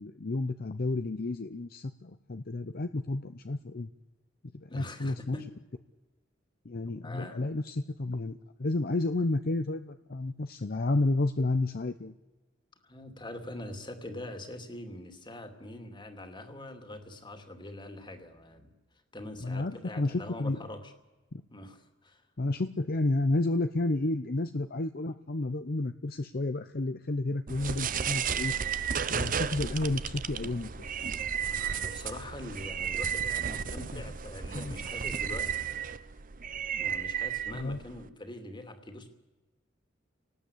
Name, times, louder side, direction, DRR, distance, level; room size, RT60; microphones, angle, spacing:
voice 1, 0.0-3.9 4.5-5.4 6.6-12.1 19.4-20.6 21.3-21.4 22.4-28.5 29.1-30.9 33.9-34.0 34.5-34.8 37.5-37.8, left 2 dB, 50° left, 9 dB, 0.7 m, -31 dB
voice 2, 4.7-5.5 6.9-7.5 12.8-18.7 19.1-20.9 21.5-22.2 31.5-35.5 36.0-36.1 36.7-39.1, left 1 dB, 25° left, 6 dB, 2.6 m, -43 dB
sound 1, 27.5-38.1, right 7 dB, 45° right, 0.7 m, -33 dB
29.5 x 19.0 x 8.4 m, 1.2 s
head